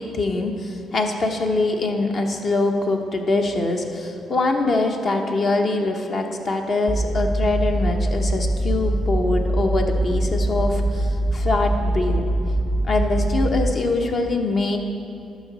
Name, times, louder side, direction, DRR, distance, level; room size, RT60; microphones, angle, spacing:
voice 1, 0.0-12.2 12.8-14.8, left 2 dB, 50° left, 4 dB, 0.9 m, -23 dB
sound 1, 6.9-13.7, right 1 dB, 10° left, 0.8 m, -23 dB
11.5 x 6.1 x 4.1 m, 2.7 s
cardioid pair, 90°, 0 cm